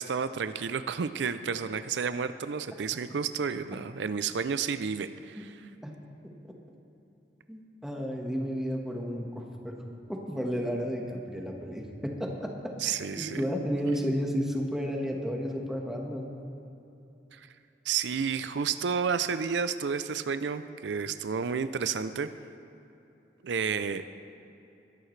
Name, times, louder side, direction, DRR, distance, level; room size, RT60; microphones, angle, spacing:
voice 1, 0.0-5.4 12.8-13.4 17.3-17.5 17.9-22.3 23.4-24.1, right 6 dB, 85° right, 12 dB, 0.5 m, -31 dB
voice 2, 7.5-9.8 10.1-16.3, equal, 5° right, 0 dB, 1.4 m, -32 dB
21.5 x 11.5 x 3.3 m, 2.9 s
head